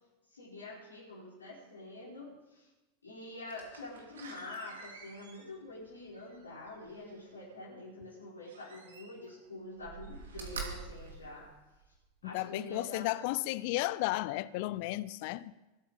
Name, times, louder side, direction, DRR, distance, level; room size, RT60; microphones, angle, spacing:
voice 1, 0.3-2.7 3.0-11.5 12.2-13.1, left 2 dB, 80° left, 5.2 m, -46 dB
Slam, 3.5-7.3 8.4-9.4 9.7-12.0 12.5-12.6, right 5 dB, 70° right, 2.8 m, -47 dB
voice 2, 12.2-15.5, left 18 dB, 55° left, 0.6 m, -34 dB
22.0 x 8.8 x 5.2 m
figure-of-eight pair, 85°, 0 cm